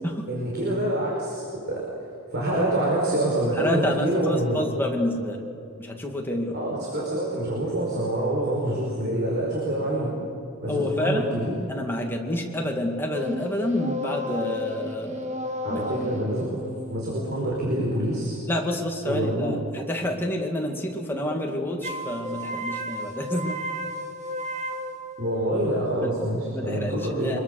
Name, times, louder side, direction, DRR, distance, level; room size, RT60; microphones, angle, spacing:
voice 1, 0.3-1.8 2.3-4.6 6.5-10.2 10.6-11.5 15.6-16.6 16.9-18.3 19.0-19.5 25.2-27.4, right 1 dB, 50° right, -4 dB, 4.9 m, -26 dB
voice 2, 3.6-5.4 5.8-6.6 10.7-11.4 11.7-15.3 15.7-16.1 18.5-23.6 26.0-26.1 26.5-27.4, left 1 dB, 10° left, 0 dB, 2.4 m, -28 dB
sound 1, 13.1-18.5 21.8-25.8, left 1 dB, 35° right, 1.3 m, -34 dB
25.0 x 22.0 x 6.7 m, 2.7 s
head